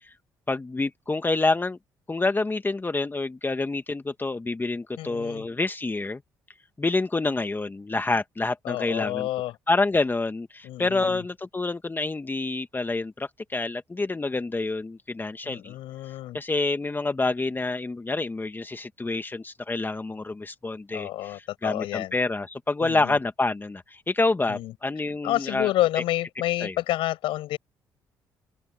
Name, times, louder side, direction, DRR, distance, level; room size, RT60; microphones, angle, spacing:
voice 1, 0.5-1.8 2.1-6.2 6.8-9.3 9.7-15.7 16.3-25.7 26.6-26.7, left 3 dB, 20° left, 1.4 m, -27 dB
voice 2, 5.0-5.5 8.6-9.6 10.6-11.2 15.4-16.4 20.9-22.1 22.8-23.2 24.5-24.7 25.2-27.6, left 15 dB, 80° left, 7.5 m, -29 dB
open air
supercardioid pair, 60°, 9 cm